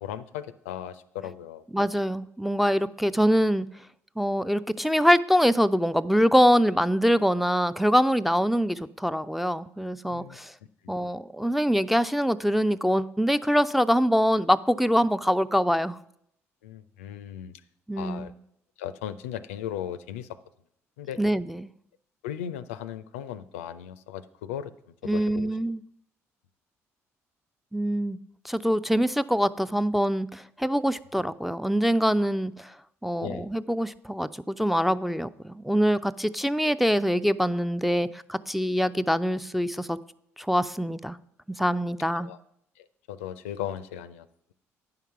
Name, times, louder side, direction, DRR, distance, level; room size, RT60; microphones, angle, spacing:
voice 1, 0.0-1.6 10.1-10.4 10.8-11.0 16.6-17.5 18.0-18.3 18.8-20.3 21.0-21.2 22.2-24.7 25.0-25.5 33.2-33.5 42.2-42.4 42.8-44.3, left 10 dB, 70° left, 14 dB, 0.4 m, -37 dB
voice 2, 1.7-3.7 4.2-10.5 10.9-16.0 17.9-18.3 21.2-21.7 25.0-25.8 27.7-28.2 28.4-32.7 33.0-40.0 40.4-41.2 41.6-42.3, equal, ahead, 11 dB, 0.3 m, -24 dB
9.3 x 5.7 x 5.8 m, 0.73 s
figure-of-eight pair, 50°, 7 cm